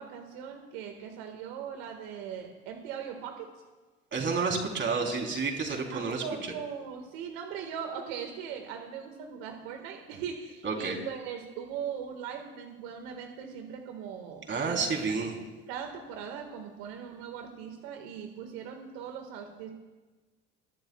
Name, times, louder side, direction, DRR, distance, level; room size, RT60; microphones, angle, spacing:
voice 1, 0.0-3.5 5.9-15.3 15.7-19.7, right 7 dB, 75° right, 4 dB, 1.8 m, -40 dB
voice 2, 4.1-6.2 10.6-11.0 14.5-15.4, right 4 dB, 35° right, 2 dB, 3.8 m, -30 dB
23.0 x 12.0 x 2.4 m, 1.3 s
hypercardioid pair, 60°, 31 cm